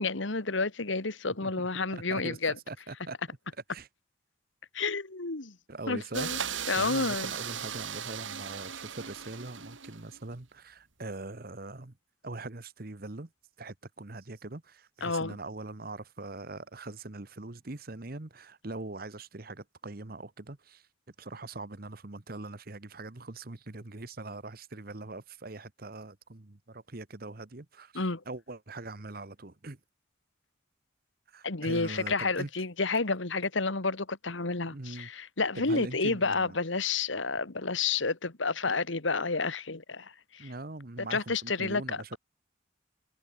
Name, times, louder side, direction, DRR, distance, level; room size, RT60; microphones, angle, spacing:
voice 1, 0.0-2.5 4.7-5.6 5.9-6.4 6.7-7.3 15.0-15.3 28.0-28.2 31.4-40.5 41.0-42.2, left 4 dB, 80° left, 1.8 m, -30 dB
voice 2, 1.4-3.2 3.7-3.9 5.7-12.0 12.2-13.3 13.6-29.8 31.3-32.5 34.7-35.1 35.5-36.6 40.4-42.2, right 2 dB, 50° right, 1.2 m, -42 dB
sound 1, 6.1-10.2, right 8 dB, 80° right, 3.4 m, -37 dB
head